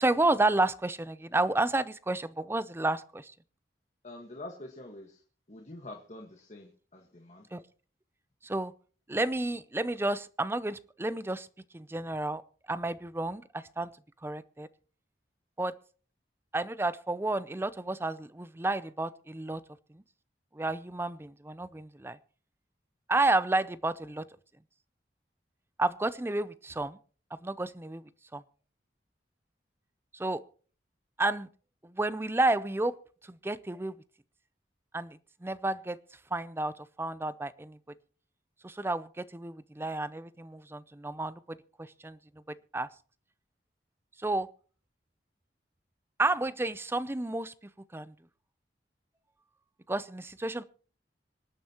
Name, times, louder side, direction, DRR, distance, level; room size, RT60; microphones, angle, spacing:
voice 1, 0.0-3.3 7.5-7.6 8.4-8.7 9.1-11.5 11.7-12.4 12.7-13.9 14.2-14.7 15.6-15.7 16.5-19.6 19.9-20.0 20.5-22.2 23.1-24.2 25.8-27.0 27.4-28.4 30.1-30.4 31.2-31.5 31.8-33.0 33.2-33.9 34.9-36.0 36.3-37.8 38.6-42.2 42.7-42.9 44.2-44.5 46.2-47.5 47.9-48.1 49.9-50.6, right 2 dB, 15° right, 16 dB, 0.5 m, -31 dB
voice 2, 4.0-5.2 5.5-7.5, left 2 dB, 40° left, 1 dB, 1.6 m, -46 dB
26.0 x 9.1 x 3.0 m, 0.41 s
head